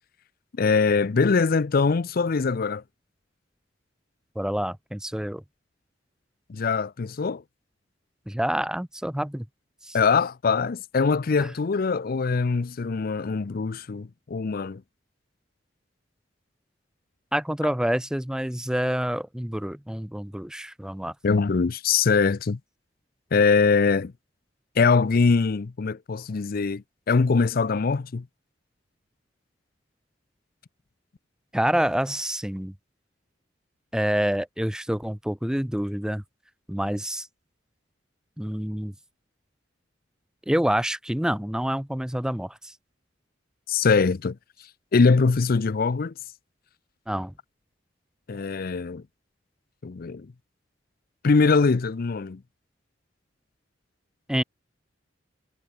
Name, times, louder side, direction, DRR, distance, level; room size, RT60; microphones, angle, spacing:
voice 1, 0.6-2.8 6.5-7.4 9.9-14.8 21.2-22.6 23.3-24.1 24.8-28.3 43.7-44.4 44.9-46.1 48.3-49.0 49.8-50.3 51.2-52.4, left 4 dB, 50° left, 0.5 m, -22 dB
voice 2, 4.4-5.4 8.3-9.5 9.8-10.0 11.4-11.5 17.3-21.1 31.5-32.7 33.9-36.2 36.7-37.3 38.4-38.9 40.5-42.7 47.1-47.3 54.3-54.4, equal, 5° right, 0.5 m, -27 dB
head